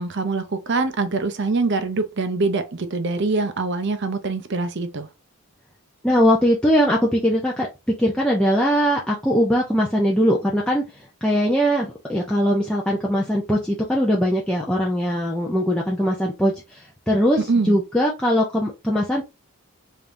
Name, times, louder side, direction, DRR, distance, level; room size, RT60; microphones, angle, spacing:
voice 1, 0.0-5.1 17.4-17.8, right 3 dB, 50° right, 0.6 m, -24 dB
voice 2, 6.0-7.7 8.0-10.9 11.2-17.4 17.7-19.2, equal, 5° left, 0.5 m, -20 dB
3.6 x 3.5 x 2.6 m
head